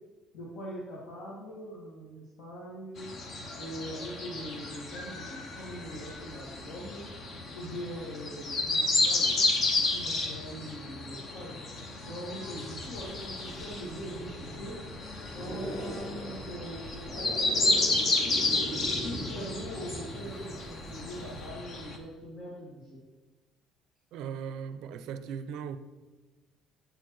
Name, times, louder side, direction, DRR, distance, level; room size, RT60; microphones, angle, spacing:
voice 1, 0.3-3.1 3.6-7.1 7.5-9.3 9.8-11.6 12.0-14.8 15.3-18.4 19.0-23.0, equal, 60° left, 1.7 m, -42 dB
sound 1, 3.0-22.0, left 2 dB, 35° left, 0.8 m, -32 dB
sound 2, 12.7-21.5, right 1 dB, 15° left, 2.5 m, -41 dB
voice 2, 24.1-25.8, right 7 dB, 60° right, 0.4 m, -38 dB
7.7 x 4.4 x 4.6 m
cardioid pair, 170°, 0 cm